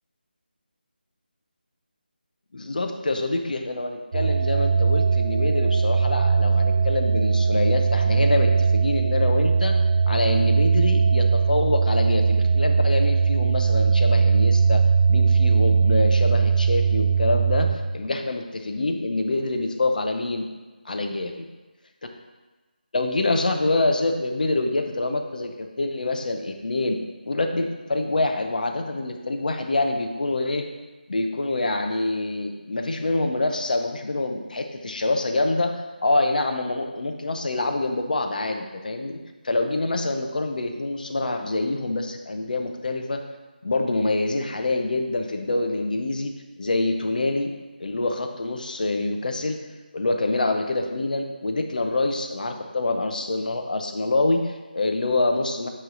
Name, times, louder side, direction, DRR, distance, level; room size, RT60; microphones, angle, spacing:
voice 1, 2.5-9.8 10.1-14.8 15.1-17.7 17.9-20.5 20.8-21.3 22.9-27.0 27.3-30.6 31.1-39.2 39.4-43.2 43.6-46.3 46.6-47.5 47.8-49.6 49.9-55.7, left 2 dB, 55° left, 4 dB, 0.8 m, -26 dB
sound 1, 4.1-17.8, right 5 dB, 50° right, 0.5 m, -20 dB
8.7 x 3.2 x 3.8 m, 1.2 s
figure-of-eight pair, 165°, 5 cm